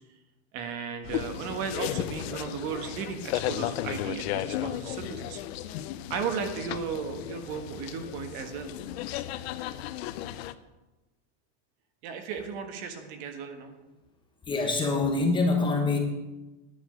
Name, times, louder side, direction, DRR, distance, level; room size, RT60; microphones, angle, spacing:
voice 1, 0.5-5.4 6.1-8.7 12.0-13.7, right 6 dB, 45° right, 6 dB, 1.5 m, -35 dB
sound 1, 1.0-10.5, left 13 dB, 60° left, 0.7 m, -35 dB
voice 2, 14.5-16.0, left 3 dB, 15° left, 2 dB, 1.1 m, -25 dB
10.0 x 6.0 x 8.8 m, 1.1 s
supercardioid pair, 155°, 35 cm